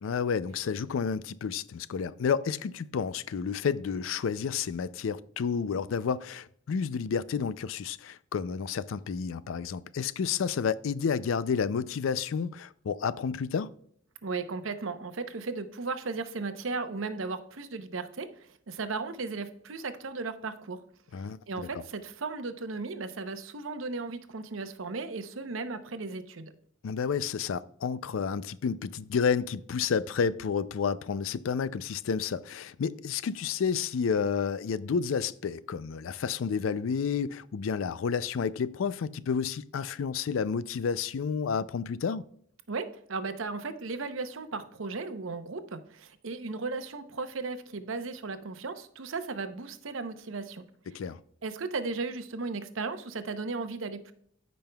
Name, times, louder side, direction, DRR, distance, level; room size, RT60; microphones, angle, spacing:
voice 1, 0.0-13.7 21.1-21.7 26.8-42.2 50.9-51.2, left 6 dB, 75° left, 0.4 m, -30 dB
voice 2, 14.2-20.8 21.5-26.5 42.7-51.0 51.4-54.1, right 4 dB, 70° right, 0.8 m, -36 dB
14.5 x 5.3 x 2.3 m
head